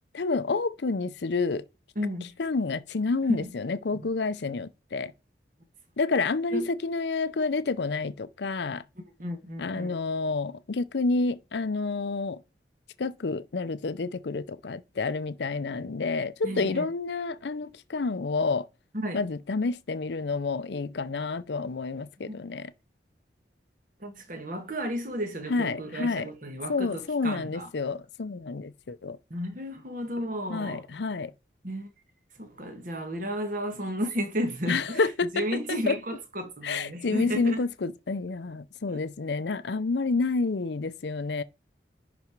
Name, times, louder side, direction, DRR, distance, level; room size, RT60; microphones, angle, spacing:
voice 1, 0.1-1.6 2.4-5.1 6.0-8.8 9.6-12.4 13.0-18.7 19.1-22.7 25.5-26.3 26.7-29.2 30.5-31.3 34.7-36.0 36.6-41.4, left 3 dB, 70° left, 0.6 m, -29 dB
voice 2, 2.0-2.3 3.3-3.5 6.5-6.7 9.0-10.0 16.4-16.9 18.9-19.2 22.3-22.4 24.0-27.7 29.3-30.8 31.6-31.9 32.4-37.6 38.9-39.0, equal, 45° right, 1.8 m, -33 dB
11.0 x 4.2 x 4.7 m
head